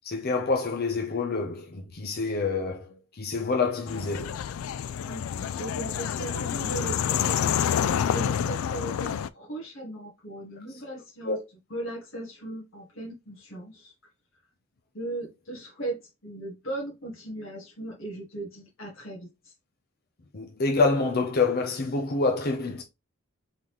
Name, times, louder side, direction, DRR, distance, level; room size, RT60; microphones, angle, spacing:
voice 1, 0.0-4.3 11.2-11.4 20.3-22.8, left 3 dB, 50° left, 0.7 m, -27 dB
sound 1, 3.9-9.3, left 8 dB, 85° left, 0.3 m, -28 dB
voice 2, 5.0-11.4 11.7-13.9 14.9-19.5, right 1 dB, 65° left, 1.7 m, -38 dB
4.0 x 3.7 x 3.1 m
head